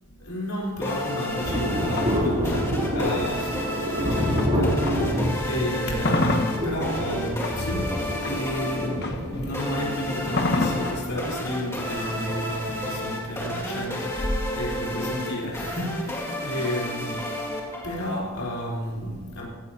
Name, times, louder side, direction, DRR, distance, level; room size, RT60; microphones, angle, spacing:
voice 1, 0.2-19.5, equal, 80° left, -3 dB, 4.0 m, -31 dB
sound 1, 0.8-18.2, left 1 dB, 15° left, 2.3 m, -32 dB
sound 2, 1.1-5.3 5.7-13.6, left 2 dB, 50° left, 1.1 m, -31 dB
Thunder, 1.4-13.4 13.7-13.8, equal, 30° right, 3.2 m, -28 dB
16.0 x 14.0 x 2.9 m, 1.5 s
head